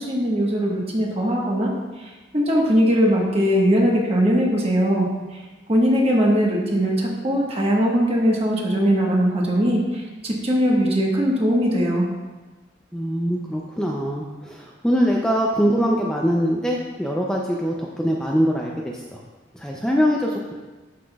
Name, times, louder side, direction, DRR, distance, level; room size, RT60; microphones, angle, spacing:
voice 1, 0.0-5.4 5.7-12.1, equal, 35° right, -2 dB, 1.3 m, -20 dB
voice 2, 12.9-19.2 19.6-20.5, equal, 5° left, -2 dB, 0.5 m, -23 dB
11.0 x 5.9 x 2.3 m, 1.3 s
head